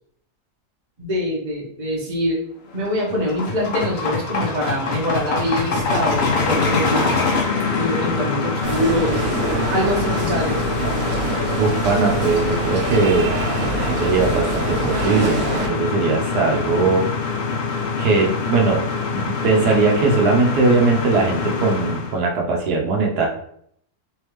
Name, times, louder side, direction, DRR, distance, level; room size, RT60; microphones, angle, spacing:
voice 1, 1.0-2.4 2.7-7.4 7.7-9.2 9.7-10.6, equal, 30° right, -3 dB, 1.1 m, -24 dB
sound 1, 2.8-22.2, left 4 dB, 60° left, 0.7 m, -24 dB
sound 2, 8.6-15.7, right 2 dB, 55° right, 1.0 m, -25 dB
voice 2, 11.6-13.3 13.8-17.1 18.0-18.8 19.1-23.3, right 4 dB, 85° right, 0 dB, 1.4 m, -19 dB
3.6 x 3.4 x 3.1 m, 0.66 s
omnidirectional pair, 1.7 m